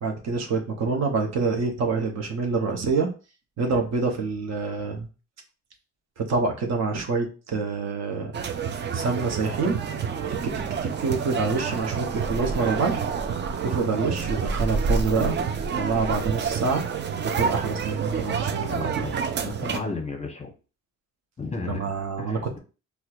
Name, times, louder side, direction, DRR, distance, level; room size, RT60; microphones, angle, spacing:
voice 1, 0.0-3.1 3.6-5.1 6.2-8.3 8.9-9.8 10.3-13.0 13.6-15.4 15.7-16.8 17.4-18.9 19.4-19.5 21.7-22.6, right 4 dB, 60° right, 2 dB, 0.8 m, -26 dB
sound 1, 8.3-19.8, right 6 dB, 40° right, 0.4 m, -28 dB
voice 2, 18.7-20.5 21.4-21.8 22.2-22.6, left 3 dB, 20° left, 2 dB, 0.8 m, -34 dB
4.2 x 2.2 x 2.4 m, 0.34 s
cardioid pair, 90°, 30 cm